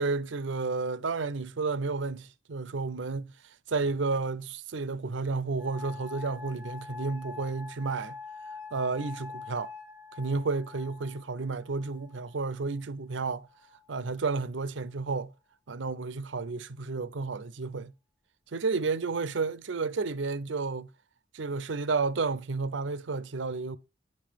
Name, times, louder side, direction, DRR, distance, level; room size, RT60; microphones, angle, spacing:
voice 1, 0.0-8.2 8.7-9.7 10.1-13.5 13.9-15.3 15.7-17.9 18.5-20.9 21.3-23.8, right 4 dB, 75° right, 0.6 m, -31 dB
sound 1, 5.6-12.5 13.4-14.0, left 4 dB, 10° right, 3.9 m, -45 dB
10.5 x 5.4 x 5.2 m
head